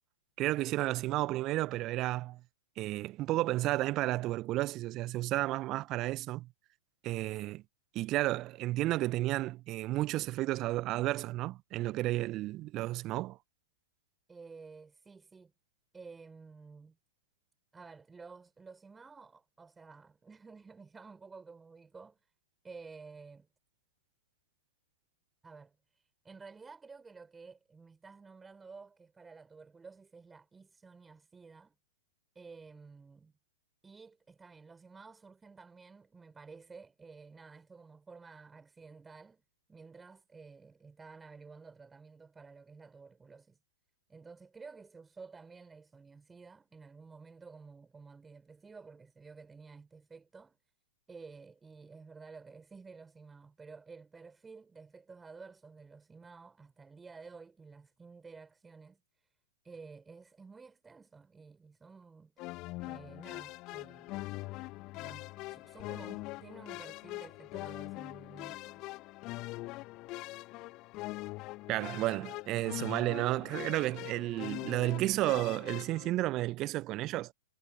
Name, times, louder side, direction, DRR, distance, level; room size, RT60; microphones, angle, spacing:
voice 1, 0.4-2.4 2.8-6.5 7.0-7.6 7.9-13.4 71.7-77.3, right 17 dB, 30° right, 1.5 m, -32 dB
voice 2, 14.3-15.5 15.9-17.0 17.7-22.3 22.6-23.5 25.4-31.7 32.3-33.3 33.8-39.4 39.7-43.6 44.1-50.6 51.1-59.3 59.6-62.3 62.8-64.1 64.9-69.3, right 4 dB, 10° right, 5.7 m, -52 dB
sound 1, 62.4-76.1, left 21 dB, 35° left, 1.8 m, -43 dB
figure-of-eight pair, 105°, 0 cm